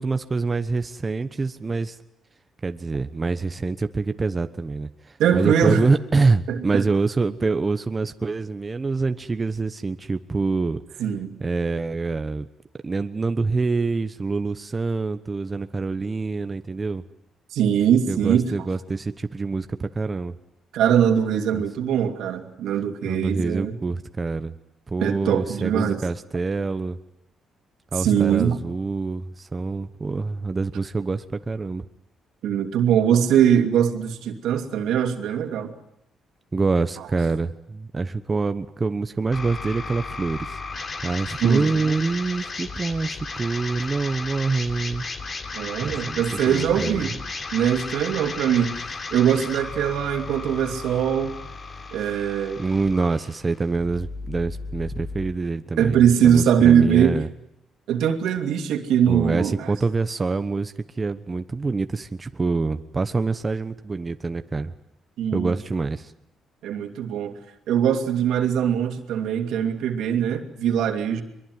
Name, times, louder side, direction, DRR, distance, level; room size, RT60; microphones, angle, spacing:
voice 1, 0.0-2.0 2.6-11.0 11.4-12.4 12.8-17.0 18.1-20.3 21.5-21.6 23.0-24.5 24.9-27.0 27.9-31.9 36.5-40.6 41.0-45.0 45.8-47.1 52.6-57.3 59.1-64.7 65.3-66.1, right 3 dB, 30° right, 9 dB, 1.0 m, -26 dB
voice 2, 5.2-5.8 6.5-6.8 11.0-11.3 17.5-18.5 20.7-23.8 25.0-26.0 28.0-28.6 32.4-35.7 37.0-37.1 41.4-42.0 45.5-47.2 47.5-48.8 49.1-51.4 51.9-52.6 55.8-57.2 57.9-59.7 65.2-65.5 66.6-67.4 67.7-71.2, right 8 dB, 85° right, 6 dB, 2.7 m, -21 dB
sound 1, 39.3-55.3, left 4 dB, 40° left, 3.4 m, -35 dB
23.0 x 22.5 x 9.6 m, 0.81 s
cardioid pair, 90°, 0 cm